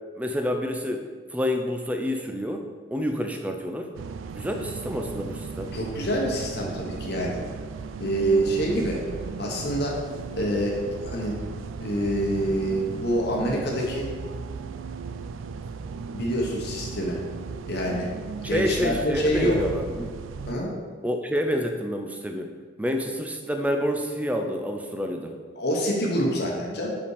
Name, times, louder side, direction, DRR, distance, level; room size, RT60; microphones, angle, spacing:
voice 1, 0.2-1.0 1.3-3.9 4.3-5.8 18.4-20.1 21.0-22.5 22.8-25.3, equal, 5° right, 4 dB, 0.5 m, -28 dB
sound 1, 3.9-20.5, right 5 dB, 80° right, 0.3 m, -36 dB
voice 2, 5.7-7.4 8.0-9.0 9.4-10.0 10.3-11.4 11.8-14.1 16.1-17.2 17.7-18.1 18.5-19.6 20.5-20.8 25.6-27.0, equal, 55° left, -2 dB, 1.0 m, -26 dB
5.2 x 5.2 x 4.8 m, 1.5 s
head